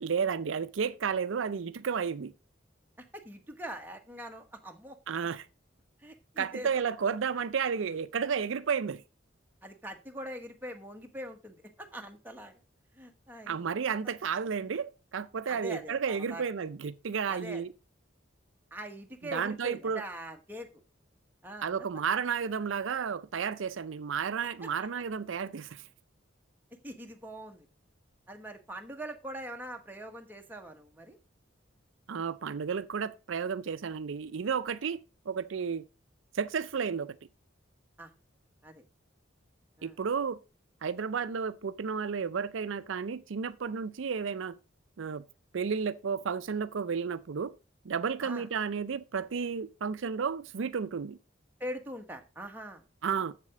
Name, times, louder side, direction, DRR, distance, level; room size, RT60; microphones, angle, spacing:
voice 1, 0.0-2.3 5.1-5.5 6.4-9.0 13.5-17.7 19.3-20.0 21.6-25.8 32.1-35.8 36.3-37.1 39.8-40.4 40.8-44.6 45.0-45.2 45.5-47.5 47.8-51.2 53.0-53.3, right 6 dB, 75° right, 0.5 m, -32 dB
voice 2, 3.0-5.0 6.0-6.7 9.6-12.6 12.9-13.8 15.5-16.4 17.3-17.6 18.7-20.8 21.4-21.9 24.6-24.7 26.8-27.7 28.3-31.2 38.0-38.1 38.6-38.8 39.8-40.0 48.2-48.5 51.6-53.2, equal, 10° right, 1.1 m, -43 dB
7.5 x 7.4 x 4.8 m
head